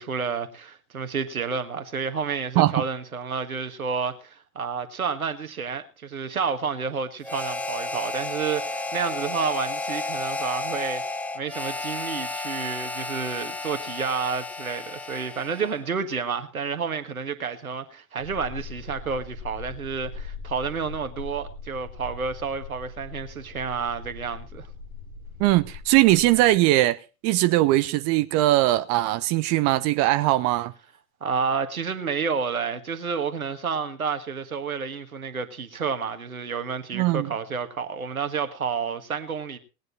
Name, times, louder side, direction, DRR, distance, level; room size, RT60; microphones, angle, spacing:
voice 1, 0.0-24.7 31.2-39.6, right 5 dB, 80° right, 1.6 m, -30 dB
Harmonica, 7.2-15.9, left 2 dB, 5° left, 0.8 m, -32 dB
sound 1, 18.2-26.5, left 4 dB, 70° left, 4.4 m, -40 dB
voice 2, 25.4-30.7 36.9-37.3, right 17 dB, 35° right, 0.7 m, -20 dB
19.0 x 9.5 x 4.1 m
figure-of-eight pair, 80°, 43 cm